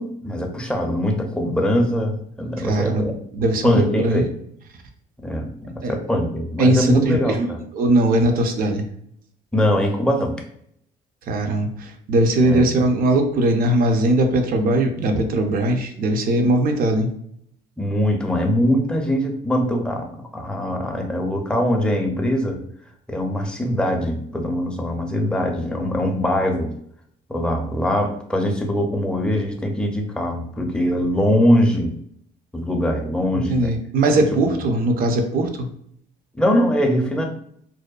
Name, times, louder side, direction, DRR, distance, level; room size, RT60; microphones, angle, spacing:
voice 1, 0.0-3.1 3.6-4.3 5.2-7.6 9.5-10.3 12.4-12.7 17.8-22.6 23.1-26.7 27.3-31.9 32.5-33.7 34.1-34.6 36.3-37.2, equal, 5° left, 2 dB, 0.5 m, -22 dB
voice 2, 2.6-4.2 5.8-5.9 6.6-7.5 7.7-8.8 11.3-17.1 33.5-35.7, right 1 dB, 60° right, 5 dB, 0.5 m, -20 dB
2.6 x 2.1 x 2.3 m, 0.68 s
cardioid pair, 110°, 17 cm